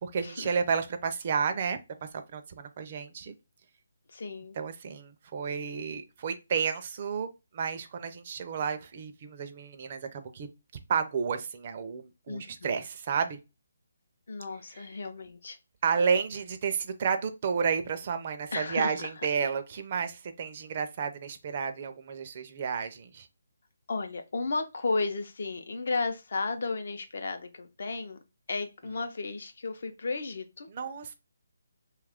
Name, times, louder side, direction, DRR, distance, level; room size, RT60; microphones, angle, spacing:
voice 1, 0.0-3.3 4.6-10.5 10.9-13.4 15.8-23.3 30.7-31.1, right 6 dB, 30° right, 0.4 m, -31 dB
voice 2, 4.1-4.6 12.3-12.8 14.3-15.6 18.5-19.3 23.9-28.2 28.5-30.7, left 3 dB, 55° left, 0.6 m, -34 dB
2.8 x 2.3 x 3.4 m
hypercardioid pair, 170°, 0 cm